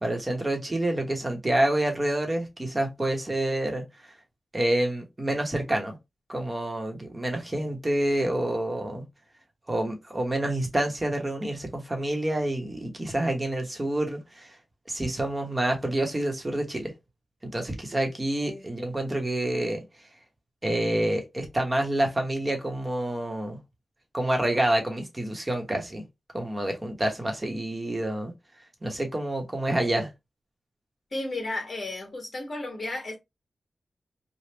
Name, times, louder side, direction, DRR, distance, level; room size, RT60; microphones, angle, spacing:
voice 1, 0.0-3.8 4.5-6.0 6.3-9.0 9.7-14.5 14.9-16.9 17.4-19.8 20.6-23.6 24.1-26.0 26.3-28.3 28.8-30.1, right 1 dB, 25° right, 1.1 m, -28 dB
voice 2, 31.1-33.1, left 2 dB, 45° left, 1.6 m, -33 dB
3.3 x 2.3 x 2.9 m
wide cardioid pair, 75°, 0 cm